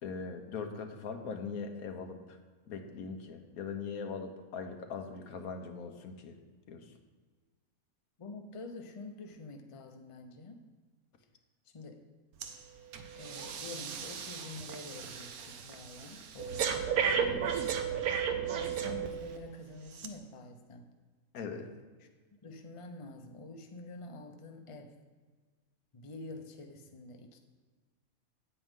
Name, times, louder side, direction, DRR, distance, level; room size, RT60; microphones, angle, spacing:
voice 1, 0.0-2.4 2.7-6.4 6.7-7.0 21.3-21.7, left 5 dB, 85° left, 5 dB, 1.4 m, -41 dB
voice 2, 8.2-10.6 11.7-12.1 13.2-17.6 18.5-20.9 22.4-25.0 25.9-27.4, left 2 dB, 30° left, 4 dB, 0.6 m, -47 dB
Breathing, 12.4-12.6 12.9-19.4 19.9-20.1, right 7 dB, 85° right, 1.2 m, -34 dB
9.2 x 8.5 x 3.7 m, 1.4 s
omnidirectional pair, 1.5 m